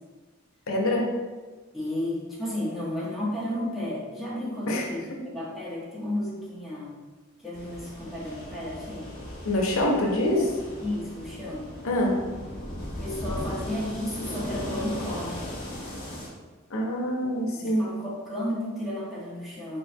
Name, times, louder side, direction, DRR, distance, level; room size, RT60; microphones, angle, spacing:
voice 1, 0.7-1.1 4.7-4.9 9.4-10.5 11.8-12.2 16.7-17.8, left 1 dB, 85° left, -1 dB, 0.7 m, -25 dB
voice 2, 1.7-6.9 7.4-9.1 9.8-10.0 10.3-10.5 10.8-11.7 13.0-15.5 17.5-19.8, left 1 dB, ahead, -9 dB, 1.1 m, -33 dB
sound 1, 7.5-16.3, equal, 45° left, 1.4 m, -37 dB
4.2 x 3.9 x 2.2 m, 1.3 s
head